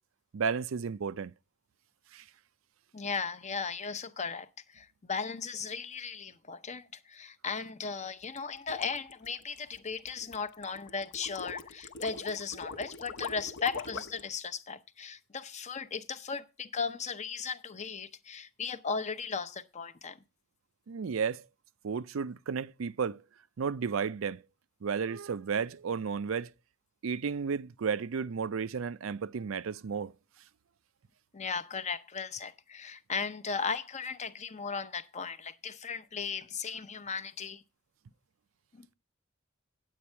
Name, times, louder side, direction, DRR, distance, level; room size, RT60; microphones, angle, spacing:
voice 1, 0.3-1.3 2.1-2.2 20.9-21.4 21.8-23.2 23.6-24.4 24.8-26.5 27.0-30.1, right 6 dB, 80° right, 0.5 m, -33 dB
voice 2, 2.9-20.2 31.3-37.6 38.7-38.9, left 5 dB, 35° left, 0.7 m, -36 dB
sound 1, 8.2-14.3, left 4 dB, 60° left, 0.9 m, -43 dB
9.5 x 8.5 x 4.4 m
head